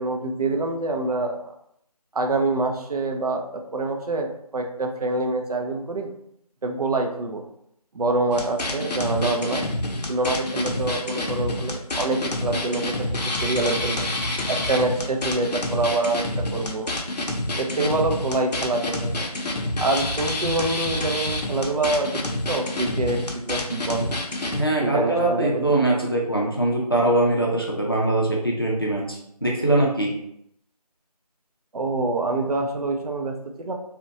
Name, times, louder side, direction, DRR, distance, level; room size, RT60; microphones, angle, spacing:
voice 1, 0.0-1.5 2.1-3.4 3.7-6.1 6.6-7.4 7.9-9.7 10.1-14.1 14.5-16.9 17.6-19.3 19.8-22.2 22.5-24.1 24.8-25.8 31.7-33.7, right 2 dB, 70° right, 3 dB, 0.5 m, -26 dB
sound 1, 8.3-24.6, left 1 dB, 90° left, 0.6 m, -28 dB
voice 2, 24.5-30.1, right 2 dB, 35° left, -3 dB, 0.4 m, -22 dB
2.7 x 2.1 x 2.4 m, 0.73 s
figure-of-eight pair, 180°, 20 cm